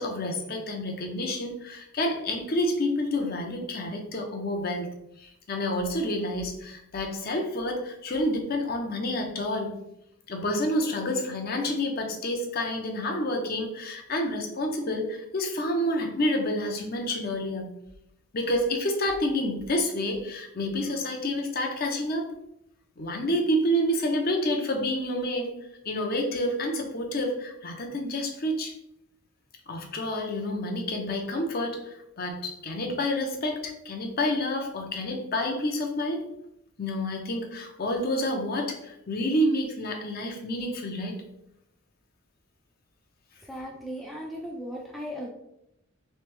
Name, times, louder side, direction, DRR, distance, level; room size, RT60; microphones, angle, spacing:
voice 1, 0.0-4.9 5.2-9.8 10.3-17.8 18.3-22.3 23.0-25.6 25.8-28.7 29.7-36.2 36.8-41.2, left 1 dB, 45° left, 3 dB, 0.6 m, -29 dB
voice 2, 43.4-45.3, equal, ahead, -2 dB, 0.3 m, -37 dB
3.4 x 3.2 x 3.2 m, 0.81 s
head